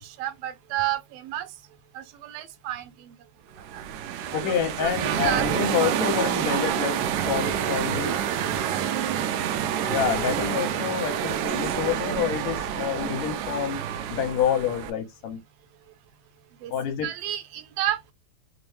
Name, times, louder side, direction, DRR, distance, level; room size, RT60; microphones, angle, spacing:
voice 1, 0.0-1.5 1.9-3.1 3.7-3.8 4.3-5.5 5.8-5.9 8.7-8.9 16.6-16.7 17.0-18.0, right 12 dB, 75° right, 1.5 m, -31 dB
sound 1, 3.6-14.9, right 9 dB, 90° right, 2.0 m, -28 dB
voice 2, 4.3-7.0 7.3-8.2 9.9-13.8 14.1-15.4 16.7-17.1, left 8 dB, 80° left, 1.9 m, -28 dB
5.2 x 2.1 x 3.0 m
omnidirectional pair, 3.3 m